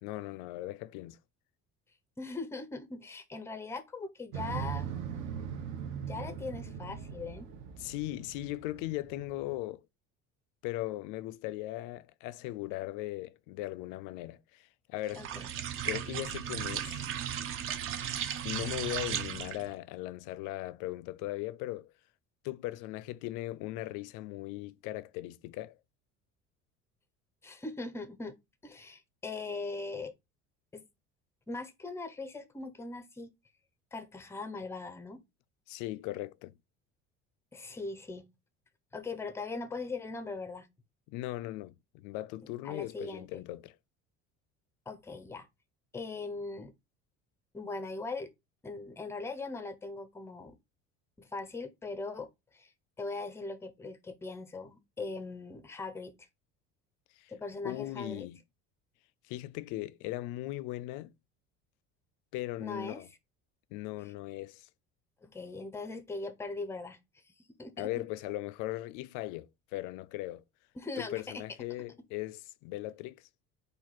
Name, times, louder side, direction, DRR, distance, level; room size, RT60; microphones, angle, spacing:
voice 1, 0.0-1.2 7.8-9.8 10.6-15.2 15.8-17.1 18.4-21.9 22.4-25.8 35.7-36.6 41.1-43.7 57.2-57.3 57.6-58.4 59.3-61.1 62.3-63.1 63.7-64.7 67.8-70.4 71.0-73.2, left 17 dB, 80° left, 0.5 m, -38 dB
voice 2, 2.2-4.9 6.0-7.5 15.1-15.5 19.3-19.5 27.4-28.4 28.6-30.1 30.7-30.8 31.5-33.3 33.9-35.2 37.5-38.2 38.9-40.7 42.6-43.4 44.9-45.5 45.9-46.7 47.5-48.3 48.6-50.6 51.2-52.7 53.0-56.1 57.3-58.3 62.6-63.1 65.2-67.0 67.6-67.9 70.8-71.2, left 3 dB, 10° left, 0.5 m, -40 dB
Motorcycle, 4.3-9.6, right 7 dB, 60° right, 1.0 m, -40 dB
sound 1, 15.1-19.7, right 9 dB, 45° right, 0.6 m, -36 dB
4.4 x 2.6 x 3.9 m
cardioid pair, 165°, 31 cm